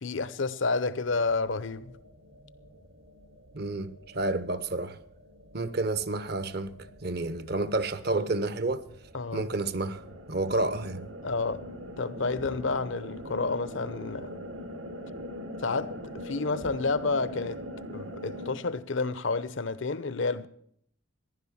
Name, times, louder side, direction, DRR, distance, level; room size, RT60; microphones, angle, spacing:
voice 1, 0.0-1.9 9.1-9.5 11.2-11.7 12.0-14.3 15.6-17.6 17.9-20.5, left 3 dB, 70° left, 0.8 m, -30 dB
sound 1, 1.0-18.6, equal, 75° right, 1.5 m, -43 dB
voice 2, 3.5-5.0 5.5-8.9 9.3-10.0 10.3-11.1, right 2 dB, 50° right, 0.9 m, -30 dB
15.0 x 11.0 x 7.2 m
head